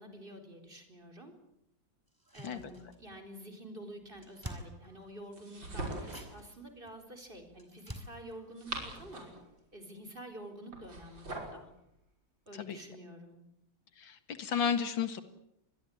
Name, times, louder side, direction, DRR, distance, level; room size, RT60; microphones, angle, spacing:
voice 1, 0.0-1.3 2.3-9.3 9.7-11.7 12.5-13.4, right 1 dB, 25° right, 6 dB, 4.6 m, -49 dB
sound 1, 2.1-3.2 3.5-3.6 3.9-5.4 5.8-9.6 9.9-10.0, equal, 10° right, 4.3 m, -50 dB
sound 2, 5.3-6.4 8.3-9.5 10.7-11.6, right 2 dB, 80° right, 6.4 m, -41 dB
voice 2, 14.0-15.2, left 7 dB, 85° left, 10 dB, 2.5 m, -33 dB
26.0 x 21.5 x 8.7 m, 0.79 s
omnidirectional pair, 2.0 m